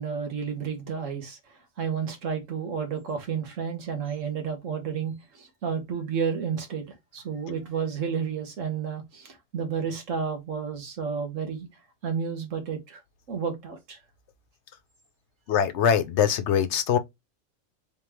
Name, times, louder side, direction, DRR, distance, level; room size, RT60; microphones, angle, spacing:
voice 1, 0.0-1.4 1.8-6.8 7.1-11.7 12.0-13.0 13.3-14.0, right 6 dB, 80° right, 1.6 m, -31 dB
voice 2, 15.5-17.0, left 8 dB, 70° left, 0.9 m, -22 dB
3.6 x 3.6 x 3.0 m
omnidirectional pair, 1.3 m